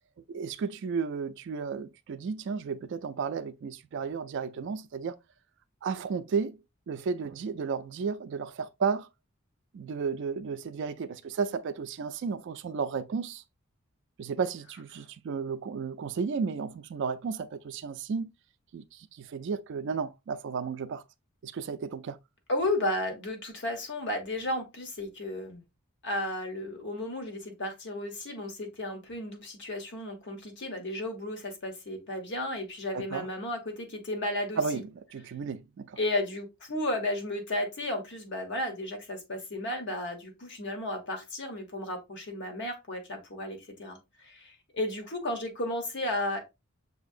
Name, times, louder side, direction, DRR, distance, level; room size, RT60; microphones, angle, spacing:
voice 1, 0.3-5.2 5.8-6.6 6.9-9.1 9.7-13.4 14.2-18.3 18.7-21.0 21.4-22.2 32.9-33.3 34.6-36.0, right 5 dB, 60° right, 0.3 m, -33 dB
voice 2, 22.5-25.6 26.0-34.8 36.0-46.4, left 1 dB, 60° left, 1.2 m, -33 dB
6.0 x 2.8 x 2.4 m
head